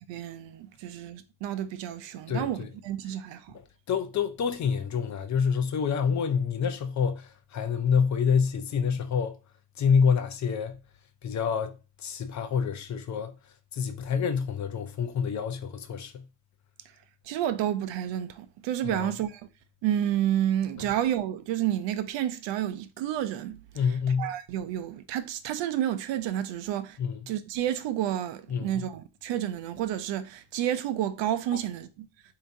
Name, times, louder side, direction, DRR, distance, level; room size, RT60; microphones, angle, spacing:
voice 1, 0.1-3.6 17.3-19.4 19.8-23.6 24.2-27.0 27.3-32.1, right 11 dB, 70° right, 0.6 m, -30 dB
voice 2, 2.3-2.7 3.9-9.4 9.8-10.8 11.2-13.3 13.7-16.2 18.8-19.1 20.8-20.9 23.8-24.3 27.0-27.2 28.5-28.8, left 6 dB, 40° left, 0.5 m, -27 dB
4.5 x 2.8 x 2.7 m
cardioid pair, 105°, 46 cm